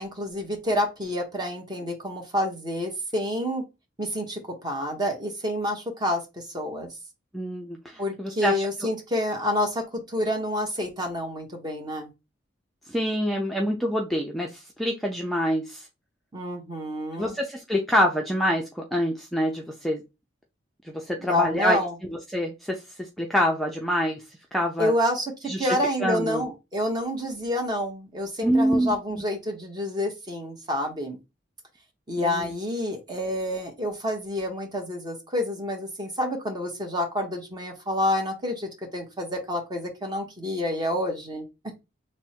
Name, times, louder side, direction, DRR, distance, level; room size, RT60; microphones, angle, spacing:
voice 1, 0.0-3.6 4.0-6.9 8.0-12.1 16.3-17.4 21.2-21.9 24.8-31.2 32.1-41.4, left 1 dB, 20° right, 2 dB, 1.0 m, -28 dB
voice 2, 7.3-8.7 12.9-15.9 17.2-20.0 20.9-21.8 22.1-24.2 24.5-24.9 25.5-25.7 26.0-26.4 28.4-29.2 32.2-32.5, equal, ahead, -1 dB, 0.5 m, -26 dB
3.5 x 2.1 x 4.3 m, 0.24 s
head